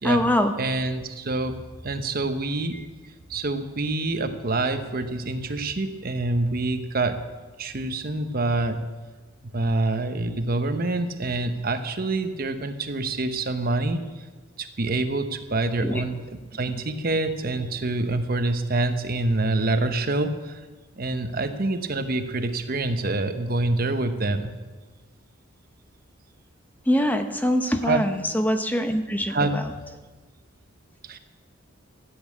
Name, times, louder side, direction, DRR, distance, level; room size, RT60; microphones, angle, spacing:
voice 1, 0.0-0.5 2.7-2.8 15.8-16.0 26.9-29.6, left 1 dB, 10° left, 7 dB, 0.8 m, -23 dB
voice 2, 0.6-2.8 3.3-7.2 7.6-8.8 9.5-14.0 14.6-20.6 21.0-24.5 27.8-28.0 29.3-29.6 31.0-31.2, right 2 dB, 45° right, 8 dB, 1.0 m, -26 dB
14.0 x 8.5 x 8.6 m, 1.3 s
head